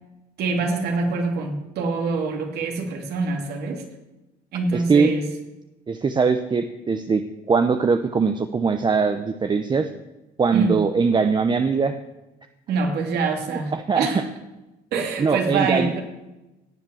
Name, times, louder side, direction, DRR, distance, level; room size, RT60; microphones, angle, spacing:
voice 1, 0.4-3.8 4.5-5.3 10.5-10.8 12.7-14.3 14.9-16.0, right 4 dB, 70° right, 3 dB, 2.8 m, -25 dB
voice 2, 4.7-5.1 5.9-9.9 10.4-12.0 13.7-14.1 15.2-15.9, right 5 dB, 25° right, 8 dB, 0.8 m, -21 dB
18.0 x 7.3 x 7.1 m, 1.0 s
cardioid pair, 110°, 17 cm